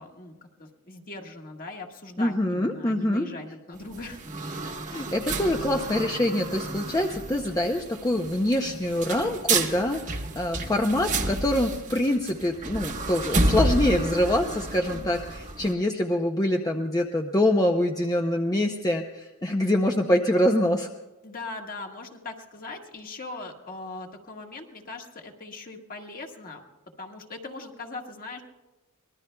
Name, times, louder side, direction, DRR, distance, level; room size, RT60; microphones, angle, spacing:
voice 1, 0.0-4.6 5.3-5.6 21.2-26.6 27.0-28.4, left 3 dB, 40° left, 2 dB, 1.5 m, -40 dB
voice 2, 2.2-3.3 4.6-20.9, left 1 dB, 15° left, 3 dB, 0.6 m, -25 dB
sound 1, 3.7-15.7, right 2 dB, 35° right, 1.2 m, -30 dB
24.5 x 20.0 x 2.2 m, 1.1 s
head